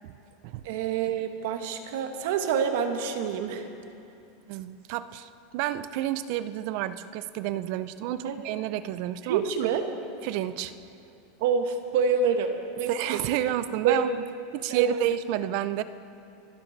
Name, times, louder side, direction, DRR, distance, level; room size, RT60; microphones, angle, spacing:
voice 1, 0.6-3.7 8.2-8.3 9.3-9.9 11.4-13.2 13.8-14.0 14.7-14.8, right 7 dB, 60° right, 6 dB, 1.2 m, -27 dB
voice 2, 4.5-9.7 10.2-10.7 12.9-14.2 14.5-15.8, right 13 dB, 45° right, 14 dB, 0.5 m, -30 dB
25.5 x 11.0 x 4.0 m, 2.7 s
supercardioid pair, 170°, 0 cm